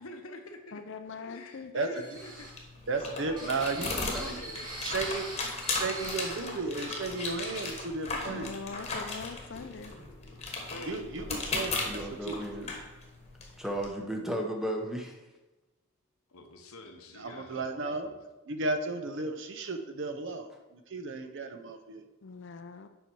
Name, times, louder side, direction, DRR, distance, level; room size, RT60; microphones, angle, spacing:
voice 1, 0.0-0.9 1.2-4.7 5.4-7.0 8.7-8.9 10.7-11.1 16.3-18.2, left 2 dB, 70° left, 5 dB, 0.9 m, -48 dB
voice 2, 0.7-1.7 8.2-9.9 22.2-22.9, left 4 dB, 55° left, 8 dB, 0.5 m, -42 dB
sound 1, 1.9-6.5 6.8-6.9 7.2-7.8, right 1 dB, 40° right, 2.3 m, -43 dB
sound 2, 2.2-13.9, left 3 dB, 30° left, 1.2 m, -37 dB
voice 3, 2.9-3.9 4.8-5.3 5.7-8.5 10.9-12.7 17.1-18.1 18.5-22.0, right 3 dB, 55° right, 7 dB, 0.6 m, -34 dB
voice 4, 3.7-4.4 11.8-12.7 13.6-15.2, right 1 dB, ahead, 1 dB, 0.8 m, -35 dB
7.1 x 5.4 x 4.5 m, 1.1 s
head